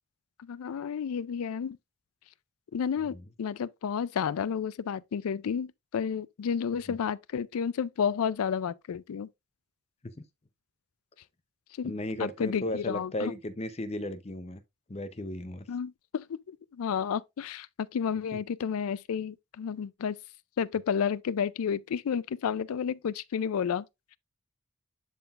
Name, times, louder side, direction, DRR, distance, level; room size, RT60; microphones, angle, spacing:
voice 1, 0.4-1.8 2.7-9.3 11.8-11.9 12.2-13.3 15.7-20.2 20.6-23.8, left 7 dB, 80° left, 0.4 m, -31 dB
voice 2, 11.8-14.6 14.9-15.7, left 1 dB, 30° left, 0.6 m, -35 dB
11.5 x 3.9 x 2.4 m
head